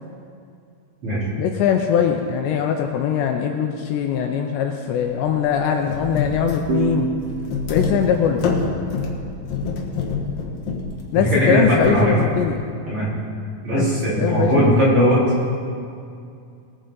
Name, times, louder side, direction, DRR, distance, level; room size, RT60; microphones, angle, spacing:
voice 1, 1.4-7.1 7.7-8.5 11.1-12.6 13.8-13.9 14.2-14.7, left 8 dB, 80° left, 3 dB, 2.7 m, -21 dB
sound 1, 4.9-5.1 5.3-5.4 5.8-12.5, left 5 dB, 65° left, 2.6 m, -26 dB
sound 2, 6.7-10.1, right 5 dB, 75° right, 3.4 m, -30 dB
voice 2, 11.3-12.1 12.9-13.1 13.6-15.2, equal, 30° right, -9 dB, 4.1 m, -18 dB
20.5 x 9.4 x 3.9 m, 2.4 s
omnidirectional pair, 5.3 m